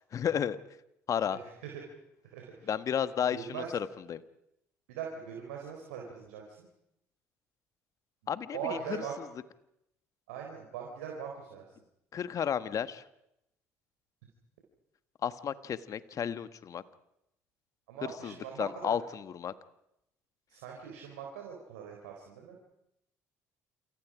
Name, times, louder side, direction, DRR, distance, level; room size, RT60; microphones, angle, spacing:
voice 1, 0.1-0.6 1.1-1.4 2.7-4.2 8.3-9.0 12.1-13.0 15.2-16.8 18.2-19.5, left 8 dB, 50° left, 12 dB, 1.4 m, -32 dB
voice 2, 1.3-1.7 2.2-2.7 3.3-3.7 4.9-6.7 8.2-9.2 10.3-11.6 17.9-19.0 20.5-22.6, right 7 dB, 80° right, 1 dB, 4.1 m, -41 dB
28.0 x 28.0 x 5.1 m, 0.81 s
hypercardioid pair, 55°, 7 cm